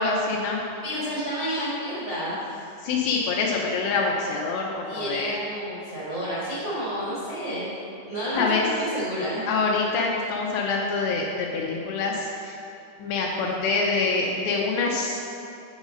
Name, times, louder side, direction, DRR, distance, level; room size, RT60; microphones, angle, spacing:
voice 1, 0.0-0.6 2.8-5.4 8.4-8.7 9.5-12.5 13.0-15.2, left 4 dB, 85° left, -1 dB, 2.5 m, -25 dB
voice 2, 0.8-2.3 4.9-7.7 8.0-9.4, equal, 85° right, -10 dB, 1.0 m, -30 dB
8.1 x 5.1 x 5.1 m, 2.6 s
omnidirectional pair, 5.3 m